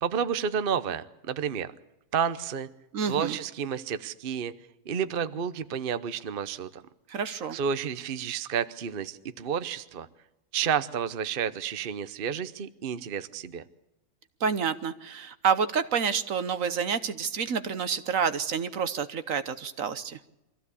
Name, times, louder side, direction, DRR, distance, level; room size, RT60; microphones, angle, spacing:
voice 1, 0.0-1.7 2.1-2.7 3.1-4.5 4.9-6.8 7.5-10.1 10.5-13.6, right 7 dB, 45° right, 12 dB, 0.9 m, -30 dB
voice 2, 2.9-3.4 7.1-7.6 14.4-20.2, right 6 dB, 60° right, 12 dB, 1.3 m, -28 dB
24.0 x 15.0 x 8.3 m, 0.91 s
omnidirectional pair, 1.6 m